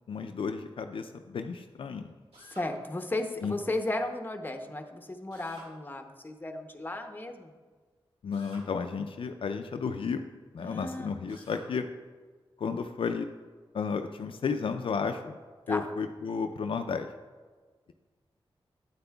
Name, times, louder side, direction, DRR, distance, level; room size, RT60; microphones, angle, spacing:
voice 1, 0.1-2.1 3.4-3.6 8.2-10.3 10.5-11.9 12.6-13.3 13.7-15.4 15.7-17.1, left 5 dB, 65° left, 6 dB, 0.4 m, -32 dB
Drill, 2.3-2.7 5.3-5.7 8.3-8.7 11.3-11.7, right 1 dB, 85° right, 1.9 m, -51 dB
voice 2, 2.5-7.5 10.6-11.1 15.7-15.9, left 2 dB, 20° left, 5 dB, 0.7 m, -35 dB
8.6 x 7.9 x 2.3 m, 1.4 s
cardioid pair, 60°, 10 cm